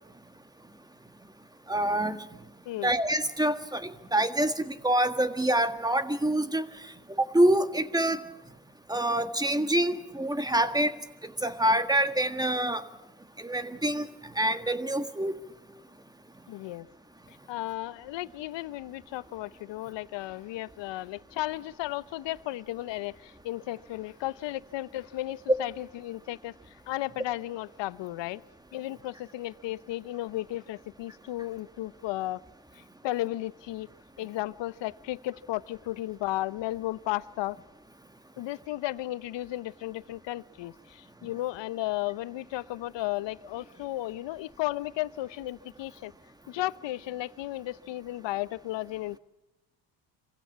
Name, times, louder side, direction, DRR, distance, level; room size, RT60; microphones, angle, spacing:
voice 1, 1.7-2.2 2.8-6.6 7.1-8.2 8.9-10.9 11.4-12.8 13.4-14.1 14.3-15.3, right 1 dB, 10° right, 9 dB, 1.7 m, -26 dB
voice 2, 2.7-3.0 16.5-16.9 17.5-26.5 26.9-28.4 28.7-32.4 33.0-33.9 34.2-37.6 38.4-46.1 46.5-49.2, left 16 dB, 60° left, 18 dB, 0.9 m, -34 dB
25.0 x 16.0 x 9.6 m, 0.96 s
supercardioid pair, 80°, 48 cm